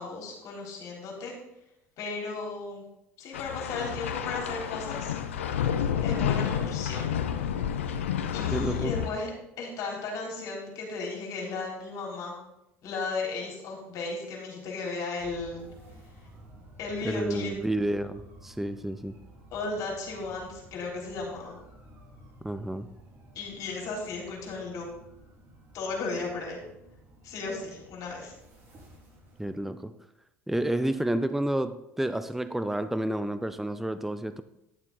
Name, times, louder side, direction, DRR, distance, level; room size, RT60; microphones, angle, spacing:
voice 1, 0.0-1.4 2.0-2.8 3.2-5.2 6.0-7.2 8.3-9.3 9.6-12.4 12.8-15.7 16.8-17.5 19.5-21.6 23.3-24.9 25.7-26.6 27.2-28.3, left 3 dB, 60° left, -2 dB, 3.8 m, -35 dB
sound 1, 3.3-9.1, left 8 dB, 90° left, 0.7 m, -30 dB
voice 2, 8.5-8.9 17.0-19.2 22.4-22.9 29.4-29.9 30.5-34.4, right 1 dB, 5° right, 12 dB, 0.6 m, -30 dB
sound 2, 15.2-29.6, equal, 35° right, 3.9 m, -53 dB
11.5 x 7.1 x 4.0 m, 0.86 s
hypercardioid pair, 70°, 7 cm